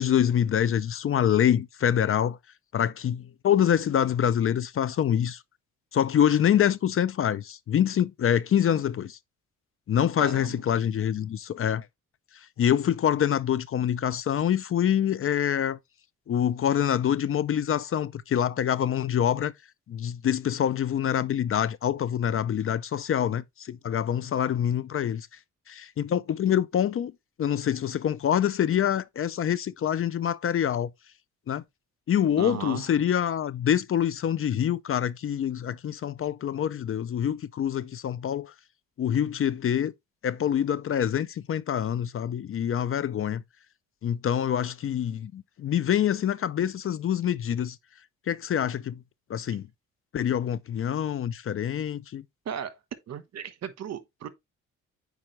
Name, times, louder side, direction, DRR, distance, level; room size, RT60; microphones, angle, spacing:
voice 1, 0.0-2.4 2.7-5.4 5.9-9.2 9.9-11.9 12.6-15.8 16.3-19.5 19.9-25.3 25.7-27.1 27.4-30.9 31.5-31.6 32.1-38.5 39.0-39.9 40.2-43.4 44.0-47.8 48.3-49.0 49.3-49.7 50.1-52.2, left 9 dB, 45° left, 0.6 m, -25 dB
voice 2, 10.2-10.6 32.4-32.9 52.4-52.8 53.1-54.3, right 8 dB, 60° right, 1.2 m, -36 dB
8.8 x 4.9 x 3.1 m
cardioid pair, 90°, 30 cm